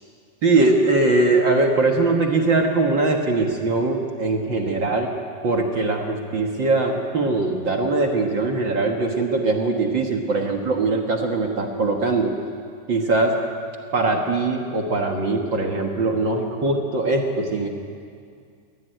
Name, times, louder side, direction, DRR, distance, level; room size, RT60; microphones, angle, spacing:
voice 1, 0.4-5.1 5.4-12.3 12.9-13.4 13.9-17.7, right 3 dB, 45° right, 2 dB, 1.7 m, -21 dB
22.5 x 17.5 x 9.2 m, 2.2 s
omnidirectional pair, 3.9 m